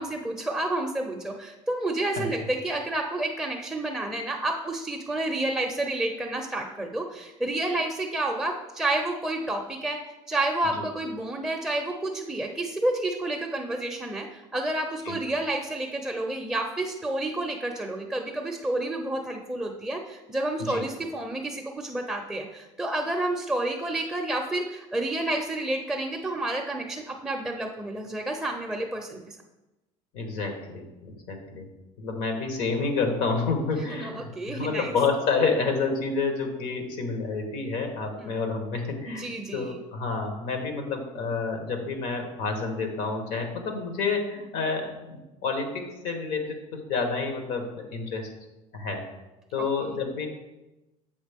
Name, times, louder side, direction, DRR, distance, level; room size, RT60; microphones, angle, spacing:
voice 1, 0.0-29.4 33.9-34.9 38.2-38.4 39.0-39.7 49.6-49.9, right 2 dB, 5° right, 1 dB, 0.5 m, -30 dB
voice 2, 30.1-31.7 32.0-45.2 45.4-48.3 48.7-49.0 49.5-50.3, left 4 dB, 80° left, 4 dB, 1.2 m, -29 dB
7.2 x 4.5 x 3.5 m, 1.0 s
cardioid pair, 130°, 14 cm